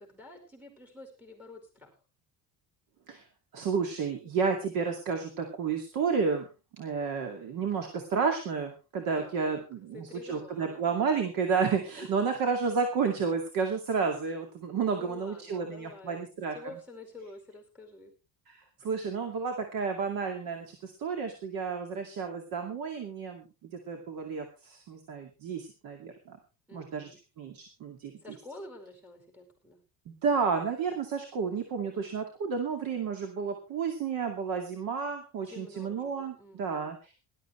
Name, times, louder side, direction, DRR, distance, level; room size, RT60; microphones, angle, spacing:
voice 1, 0.0-1.9 9.2-9.7 9.9-10.8 12.0-12.1 14.8-16.2 16.5-18.1 26.7-27.2 28.2-29.8 35.4-36.9, left 2 dB, 5° right, 4 dB, 5.1 m, -48 dB
voice 2, 3.5-6.5 6.7-16.6 18.5-26.4 26.7-27.1 27.4-28.4 30.1-37.1, right 5 dB, 60° right, 5 dB, 2.4 m, -31 dB
19.5 x 12.5 x 3.2 m, 0.30 s
cardioid pair, 165°, 38 cm